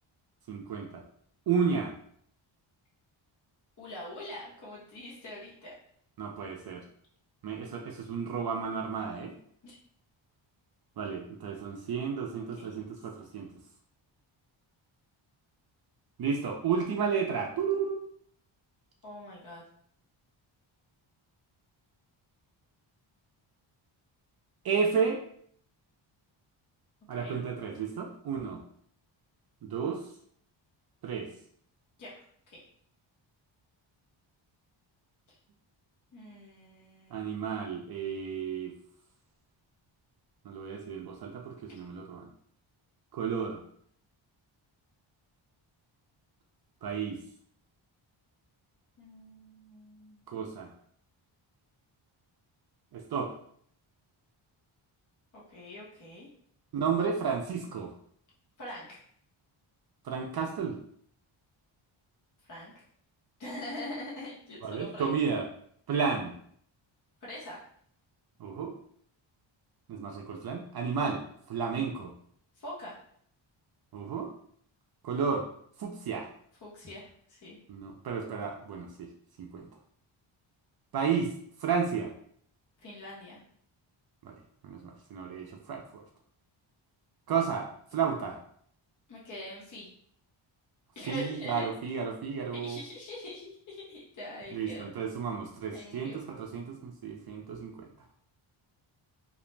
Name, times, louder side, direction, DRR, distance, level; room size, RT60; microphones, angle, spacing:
voice 1, 0.5-1.0 1.5-1.9 6.2-6.8 7.4-9.3 11.0-13.5 16.2-18.0 24.6-25.2 27.1-28.6 29.6-30.0 31.0-31.3 37.1-38.7 40.4-42.3 43.1-43.6 46.8-47.2 50.3-50.7 52.9-53.3 56.7-57.9 60.0-60.8 64.6-65.5 65.9-66.3 68.4-68.7 69.9-71.2 71.5-72.1 73.9-74.3 75.0-75.4 75.8-76.3 77.7-79.1 79.4-79.7 80.9-81.3 81.6-82.1 84.2-84.3 84.6-85.8 87.3-88.4 91.1-92.8 94.5-97.8, right 6 dB, 55° right, 1 dB, 0.5 m, -32 dB
voice 2, 3.8-5.7 9.6-9.8 12.6-13.0 19.0-19.6 27.1-27.4 32.0-32.6 35.3-35.4 36.1-37.2 49.0-50.2 55.3-56.3 58.6-59.0 62.4-62.7 63.4-65.1 67.2-67.6 72.6-73.0 76.6-77.6 82.8-83.4 89.1-89.9 91.0-91.7 92.5-94.9 95.7-96.2, left 1 dB, 40° left, -5 dB, 0.8 m, -43 dB
2.4 x 2.0 x 3.1 m, 0.63 s
cardioid pair, 95°, 48 cm